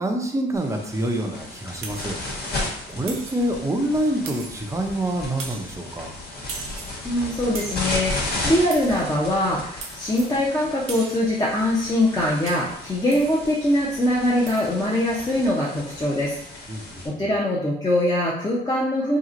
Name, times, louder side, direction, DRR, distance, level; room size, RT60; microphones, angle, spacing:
voice 1, 0.0-6.1 16.7-17.0, right 1 dB, 15° right, 3 dB, 0.6 m, -27 dB
sound 1, 0.5-17.1, left 2 dB, 50° left, 1.4 m, -34 dB
sound 2, 1.8-2.1 3.1-3.5 4.3-4.8 5.4-5.7 6.5-7.0 7.5-7.9 8.7-9.0 9.8-10.4 10.9-11.3 12.5-12.8 13.1-13.4 14.5-14.7, right 5 dB, 85° right, 0.7 m, -38 dB
voice 2, 7.0-16.4 17.0-19.2, left 1 dB, 20° left, -6 dB, 0.7 m, -22 dB
2.9 x 2.4 x 3.8 m, 0.69 s
cardioid pair, 90°, 20 cm